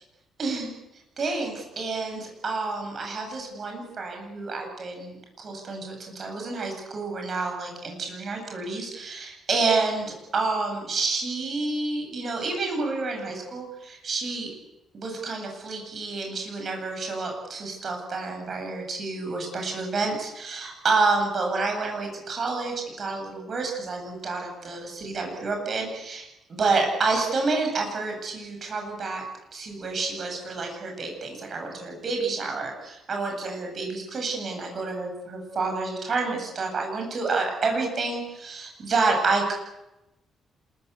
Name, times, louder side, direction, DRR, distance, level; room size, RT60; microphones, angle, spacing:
voice 1, 0.4-0.7 1.2-14.5 14.9-29.2 29.5-39.5, right 3 dB, 35° right, 3 dB, 7.5 m, -29 dB
27.0 x 22.0 x 8.2 m, 0.92 s
cardioid pair, 170°, 0 cm